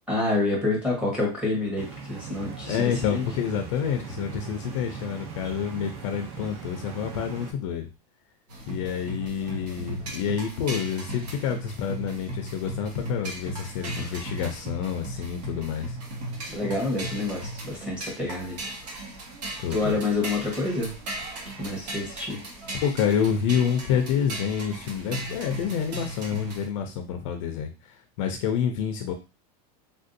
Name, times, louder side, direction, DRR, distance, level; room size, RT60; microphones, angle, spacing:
voice 1, 0.1-3.2 14.0-14.1 16.5-18.6 19.7-20.9 21.6-22.4, left 2 dB, 5° right, -3 dB, 1.0 m, -28 dB
sound 1, 1.8-7.5, right 5 dB, 40° right, 0.7 m, -40 dB
voice 2, 2.6-7.9 8.7-16.0 19.6-20.0 21.3-21.5 22.8-29.1, left 8 dB, 50° left, 5 dB, 0.5 m, -28 dB
sound 2, 8.5-26.7, right 1 dB, 75° right, 1.4 m, -37 dB
3.5 x 2.6 x 2.6 m, 0.30 s
supercardioid pair, 175°, 21 cm